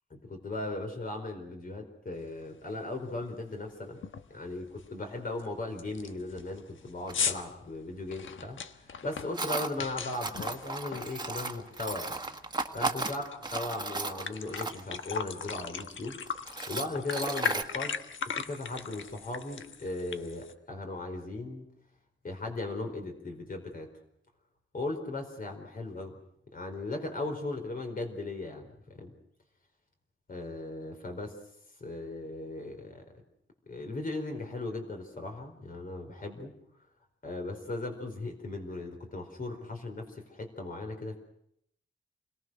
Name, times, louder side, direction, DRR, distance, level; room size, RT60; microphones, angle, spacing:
voice 1, 0.1-4.0 4.3-12.2 12.7-16.2 16.7-17.9 18.4-21.7 22.2-23.9 24.7-26.2 26.5-29.1 30.3-31.4 31.8-33.0 33.7-36.5 37.2-41.2, left 2 dB, 45° left, 4 dB, 4.5 m, -37 dB
sound 1, 2.4-2.5 2.9-3.2 3.5-3.6 4.0-4.4 4.8-4.9 5.4-5.5 5.8-11.7 12.1-13.4 13.7-13.8 14.1-20.5, left 6 dB, 80° left, 1.3 m, -38 dB
Tools, 7.1-7.2 9.3-9.7 10.1-15.0 15.7-15.8 16.3-17.6, right 3 dB, 20° right, 1.5 m, -35 dB
28.5 x 21.5 x 6.4 m, 0.74 s
wide cardioid pair, 145°, 20 cm